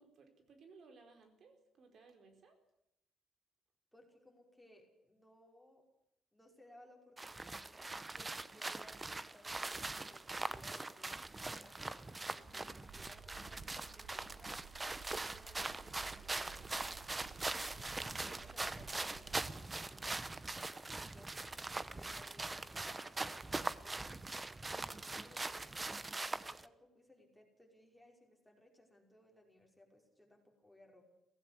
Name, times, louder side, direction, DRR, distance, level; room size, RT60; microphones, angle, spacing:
voice 1, 0.0-2.6 12.4-12.7, right 4 dB, 60° right, 6 dB, 4.3 m, -61 dB
voice 2, 3.9-5.9 6.3-12.1 12.3-14.7 15.1-16.8 17.7-24.0 24.7-31.0, left 1 dB, ahead, 1 dB, 5.4 m, -63 dB
sound 1, 7.2-26.6, right 2 dB, 20° right, 0.9 m, -42 dB
sound 2, 12.9-19.5, right 8 dB, 75° right, 0.9 m, -56 dB
17.0 x 15.5 x 9.9 m, 0.83 s
cardioid pair, 90°, 0 cm